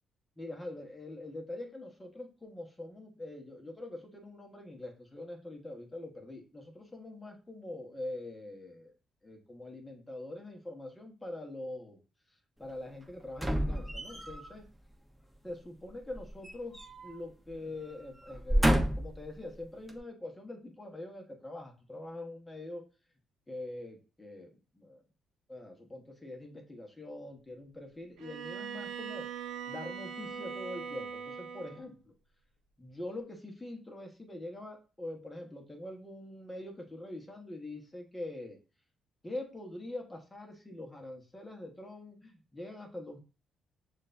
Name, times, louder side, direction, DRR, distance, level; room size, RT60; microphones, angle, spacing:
voice 1, 0.4-8.9 9.2-12.0 12.6-14.6 15.4-16.8 17.0-22.8 23.5-25.0 25.5-29.3 29.7-32.1 32.8-38.6 39.2-43.2, left 1 dB, 15° left, 2 dB, 1.3 m, -44 dB
sound 1, 13.3-14.5 16.0-17.2 17.5-17.7 18.3-19.2 19.9-20.0, equal, 5° right, 1.0 m, -30 dB
Bowed string instrument, 28.2-31.9, right 7 dB, 85° right, 0.7 m, -41 dB
6.4 x 2.6 x 2.6 m, 0.33 s
cardioid pair, 90°, 0 cm